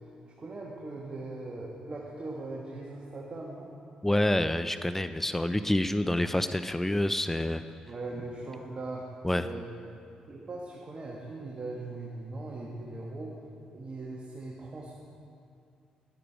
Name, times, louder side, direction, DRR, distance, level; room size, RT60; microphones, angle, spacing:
voice 1, 0.4-3.7 7.8-9.1 9.4-9.7 10.3-13.4 13.7-15.0, right 2 dB, 40° right, -3 dB, 1.5 m, -40 dB
voice 2, 4.0-7.6 9.2-9.4, left 1 dB, 10° left, 11 dB, 0.5 m, -27 dB
12.0 x 9.2 x 4.9 m, 2.5 s
hypercardioid pair, 45°, 3 cm